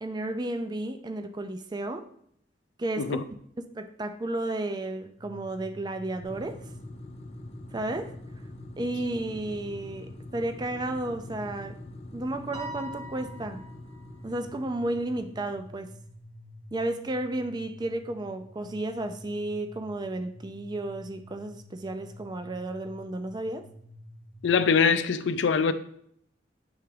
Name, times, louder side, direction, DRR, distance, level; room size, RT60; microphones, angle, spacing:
voice 1, 0.0-2.1 2.8-3.2 3.6-6.7 7.7-8.1 8.8-11.8 12.1-13.6 14.2-15.9 16.7-23.7, right 2 dB, 25° right, 0.4 m, -33 dB
sound 1, 5.1-24.7, equal, 55° right, 2.7 m, -49 dB
sound 2, 6.2-16.0, left 2 dB, 35° left, 0.6 m, -45 dB
Piano, 12.5-14.1, right 1 dB, 40° right, 1.9 m, -41 dB
voice 2, 24.4-25.7, left 5 dB, 85° left, 0.4 m, -23 dB
9.5 x 3.4 x 3.4 m
head